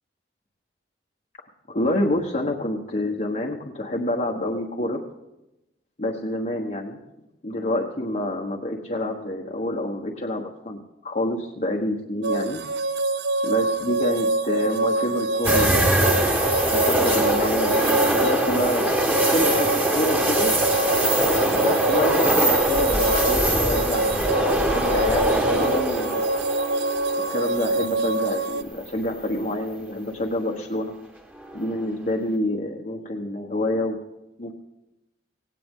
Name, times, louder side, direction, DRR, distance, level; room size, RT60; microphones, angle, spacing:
voice 1, 1.7-5.0 6.0-7.0 7.4-12.6 13.4-16.0 16.7-18.9 19.3-20.5 21.6-26.5 27.3-30.9 31.5-34.0 34.4-34.5, left 1 dB, 45° left, -1 dB, 1.3 m, -27 dB
sound 1, 12.2-28.6, right 2 dB, 70° right, 0.6 m, -25 dB
sound 2, 15.4-28.5 28.9-29.0 31.4-31.8, right 1 dB, 10° right, 1.8 m, -23 dB
17.5 x 17.0 x 3.8 m, 0.93 s
head